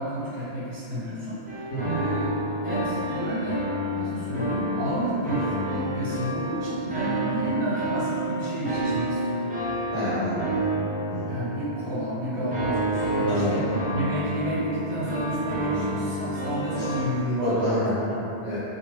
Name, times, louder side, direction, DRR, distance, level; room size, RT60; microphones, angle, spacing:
voice 1, 0.0-2.3 2.6-3.6 3.9-9.4 11.3-18.2, right 1 dB, 65° right, -9 dB, 1.2 m, -30 dB
sound 1, 1.5-17.0, right 1 dB, 10° right, 0.5 m, -30 dB
voice 2, 9.9-10.5 11.1-11.4 13.3-13.6 17.4-18.6, equal, 75° left, -10 dB, 1.2 m, -28 dB
Wind instrument woodwind instrument, 12.3-17.2, right 2 dB, 35° left, 0.6 m, -37 dB
2.6 x 2.3 x 3.1 m, 2.9 s
omnidirectional pair, 1.2 m